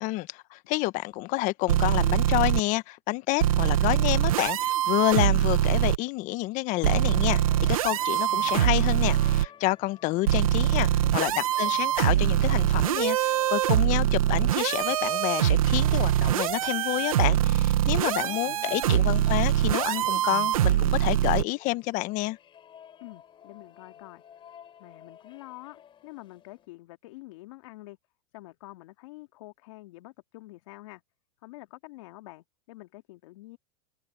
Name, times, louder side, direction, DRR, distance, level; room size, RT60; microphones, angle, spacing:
voice 1, 0.0-7.4 7.7-22.4, left 20 dB, 45° left, 1.3 m, -29 dB
sound 1, 1.7-2.6 3.4-6.0 6.8-9.5 10.3-21.4, right 12 dB, 85° right, 0.9 m, -23 dB
sound 2, 6.8-26.7, left 9 dB, 30° left, 3.9 m, -54 dB
voice 2, 10.8-11.4 18.0-19.0 23.0-24.2 24.8-28.0 28.3-31.0 31.4-33.6, left 20 dB, 65° left, 2.5 m, -47 dB
hypercardioid pair, 115°, 17 cm